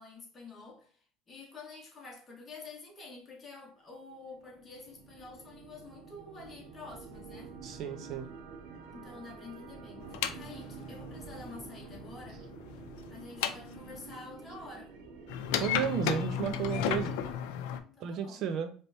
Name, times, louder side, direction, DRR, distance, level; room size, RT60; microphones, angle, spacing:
voice 1, 0.0-7.5 8.9-12.5 13.1-15.0 17.8-18.4, left 3 dB, 20° left, 1.5 m, -49 dB
sound 1, 3.9-17.3, right 4 dB, 85° right, 1.0 m, -48 dB
voice 2, 7.6-8.3 15.6-17.2 18.0-18.7, right 8 dB, 50° right, 0.5 m, -33 dB
sound 2, 10.0-14.1 15.3-17.8, left 9 dB, 85° left, 0.5 m, -34 dB
4.3 x 3.3 x 2.6 m
cardioid pair, 155°, 0 cm